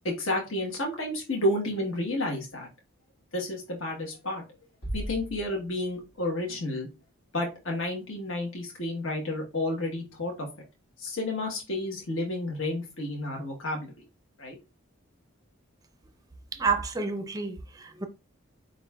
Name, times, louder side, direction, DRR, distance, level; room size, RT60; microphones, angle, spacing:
voice 1, 0.0-2.7 3.3-4.4 4.9-6.9 7.3-10.5 11.0-14.0 14.4-14.6, left 1 dB, 65° left, 1.2 m, -31 dB
sound 1, 4.8-6.8, right 1 dB, 80° left, 1.4 m, -38 dB
voice 2, 16.5-18.0, right 4 dB, 15° right, 0.5 m, -29 dB
7.7 x 2.6 x 2.3 m
head